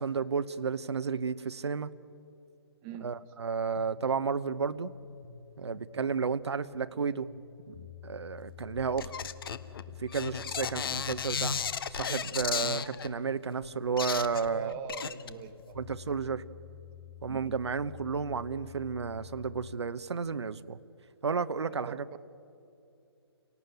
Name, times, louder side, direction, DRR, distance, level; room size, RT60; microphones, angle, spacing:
voice 1, 0.0-1.9 3.0-4.9 5.6-7.3 7.7-9.3 10.0-11.6 11.9-14.7 15.7-16.4 17.2-20.8 21.2-22.0, right 5 dB, 80° right, 12 dB, 0.9 m, -32 dB
voice 2, 2.8-3.1 14.5-15.8 17.3-17.5 21.7-22.2, right 8 dB, 25° right, 10 dB, 1.0 m, -43 dB
sound 1, 3.7-19.7, left 7 dB, 35° left, 4.8 m, -49 dB
sound 2, 8.8-13.1 13.6-13.7 14.0-15.6 15.9-16.0, left 7 dB, 55° left, 1.2 m, -34 dB
28.5 x 18.0 x 9.3 m, 2.7 s
hypercardioid pair, 145°, 14 cm